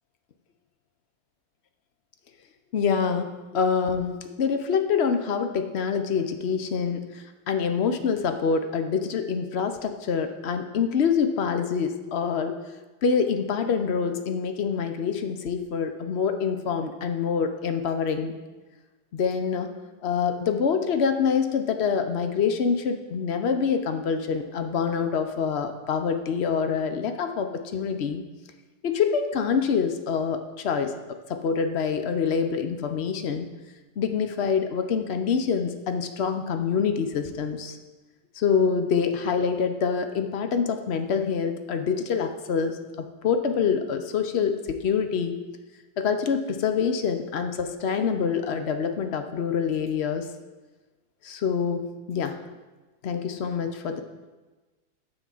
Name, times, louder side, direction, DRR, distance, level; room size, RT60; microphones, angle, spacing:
voice 1, 2.7-12.6 13.0-18.3 19.1-19.7 20.0-28.2 28.8-33.5 34.0-37.8 38.3-45.4 46.0-50.3 51.2-52.4 53.0-54.0, left 6 dB, 80° left, 7 dB, 0.5 m, -26 dB
13.0 x 5.0 x 7.7 m, 1.2 s
omnidirectional pair, 2.2 m